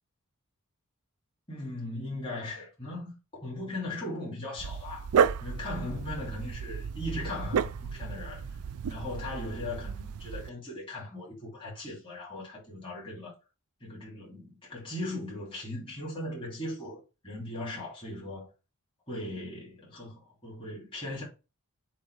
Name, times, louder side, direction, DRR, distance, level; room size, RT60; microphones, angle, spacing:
voice 1, 1.5-5.1 5.4-8.5 8.9-13.3 13.8-18.5 19.1-21.2, left 1 dB, 25° left, 2.7 m, -38 dB
Dog, 4.6-10.5, right 7 dB, 85° right, 0.4 m, -32 dB
7.3 x 2.7 x 4.8 m
head